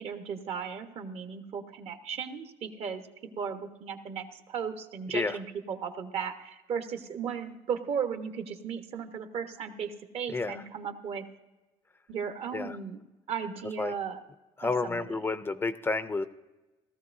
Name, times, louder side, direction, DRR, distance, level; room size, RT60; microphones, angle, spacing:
voice 1, 0.0-3.0 3.4-11.3 12.1-13.0 13.3-14.2 14.6-15.1, right 7 dB, 60° right, 6 dB, 1.2 m, -36 dB
voice 2, 10.3-10.6 12.5-12.8 13.8-13.9 14.6-16.2, left 3 dB, 20° left, 12 dB, 0.5 m, -30 dB
17.5 x 13.5 x 2.6 m, 1.1 s
cardioid pair, 125°, 12 cm